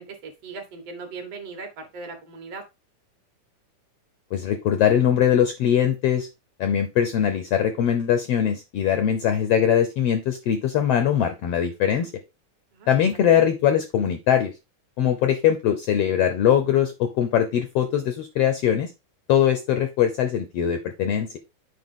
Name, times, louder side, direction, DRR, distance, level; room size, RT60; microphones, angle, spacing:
voice 1, 0.0-2.6 12.7-12.9 13.2-13.4, right 4 dB, 60° right, 3 dB, 2.1 m, -38 dB
voice 2, 4.3-6.3 6.6-12.1 12.9-14.5 15.0-18.9 19.3-21.4, left 9 dB, 75° left, 8 dB, 1.4 m, -21 dB
7.6 x 5.0 x 3.7 m, 0.25 s
omnidirectional pair, 3.5 m